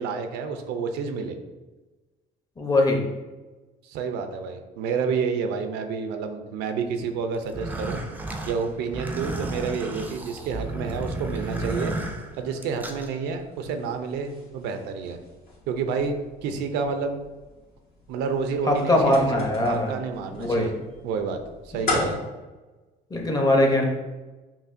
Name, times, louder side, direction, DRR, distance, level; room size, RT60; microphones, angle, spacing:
voice 1, 0.0-1.4 3.8-8.0 8.5-11.9 12.4-15.2 15.7-16.2 16.4-17.2 18.1-20.7 21.0-21.4 21.7-22.2, right 5 dB, 90° right, 6 dB, 0.4 m, -29 dB
voice 2, 2.6-3.1 18.7-19.9 20.4-20.7 21.9-22.1 23.1-23.8, left 1 dB, 20° left, 1 dB, 0.7 m, -21 dB
sound 1, 7.3-22.2, left 2 dB, 70° left, 1.4 m, -39 dB
sound 2, 7.4-13.1, right 2 dB, 10° right, 0.4 m, -33 dB
5.6 x 2.1 x 2.5 m, 1.2 s
cardioid pair, 110°, 17 cm